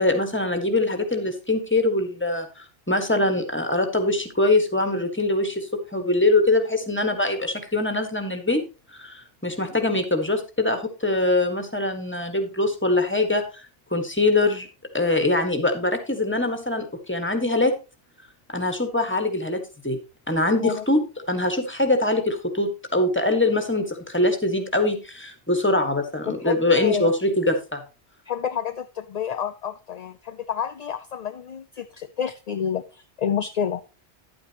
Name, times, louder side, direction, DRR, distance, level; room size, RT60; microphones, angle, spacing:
voice 1, 0.0-8.6 8.9-14.7 14.9-17.7 18.5-20.0 20.3-21.0 21.3-27.8, left 2 dB, 10° left, 7 dB, 1.5 m, -23 dB
voice 2, 26.3-27.1 28.3-33.8, left 8 dB, 50° left, 10 dB, 0.5 m, -29 dB
11.0 x 8.7 x 3.0 m, 0.30 s
omnidirectional pair, 1.1 m